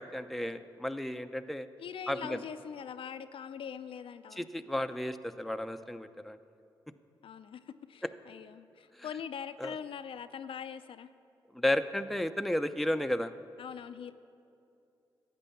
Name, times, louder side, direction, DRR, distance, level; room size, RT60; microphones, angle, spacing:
voice 1, 0.0-1.7 2.1-2.4 4.4-6.4 9.6-9.7 11.5-13.3, left 1 dB, ahead, 8 dB, 0.6 m, -33 dB
voice 2, 1.8-4.5 7.2-11.1 13.6-14.1, left 7 dB, 65° left, 11 dB, 0.4 m, -42 dB
11.5 x 8.3 x 7.0 m, 2.6 s
supercardioid pair, 45°, 10 cm